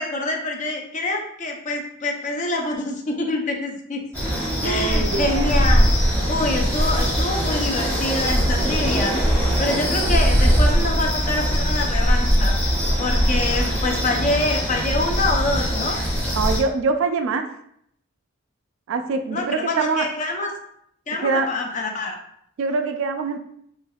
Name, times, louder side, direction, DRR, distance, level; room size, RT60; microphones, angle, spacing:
voice 1, 0.0-4.0 4.6-5.9 6.3-9.2 9.6-12.5 13.0-16.0 19.3-20.6 21.1-22.2, left 2 dB, 35° left, 2 dB, 0.5 m, -26 dB
sound 1, 4.1-16.6, equal, 5° left, 0.9 m, -21 dB
voice 2, 4.6-5.6 16.4-17.5 18.9-20.1 21.1-21.5 22.6-23.4, right 4 dB, 60° right, 7 dB, 0.3 m, -24 dB
3.2 x 3.1 x 2.3 m, 0.70 s
head